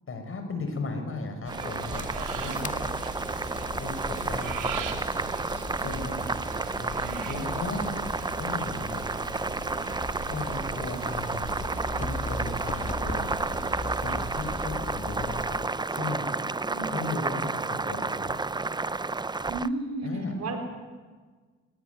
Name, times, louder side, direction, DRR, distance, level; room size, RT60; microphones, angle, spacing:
voice 1, 0.1-2.0 2.3-2.7 3.7-4.9 5.8-6.1 6.8-6.9 7.3-8.0 8.4-9.0 10.3-13.2 14.0-15.6 15.9-16.3 16.9-18.4 20.0-20.3, left 3 dB, 45° left, 6 dB, 6.2 m, -36 dB
sound 1, 1.4-14.7, right 6 dB, 85° right, 2.9 m, -41 dB
Boiling, 1.5-19.7, right 3 dB, 15° right, 0.6 m, -31 dB
sound 2, 1.9-15.7, left 2 dB, 25° left, 2.0 m, -39 dB
voice 2, 2.5-2.8 5.8-6.3 7.0-7.3 16.7-17.0 19.5-20.6, right 2 dB, 60° right, 3 dB, 4.7 m, -35 dB
21.0 x 20.0 x 9.6 m, 1.4 s
cardioid pair, 90°, 30 cm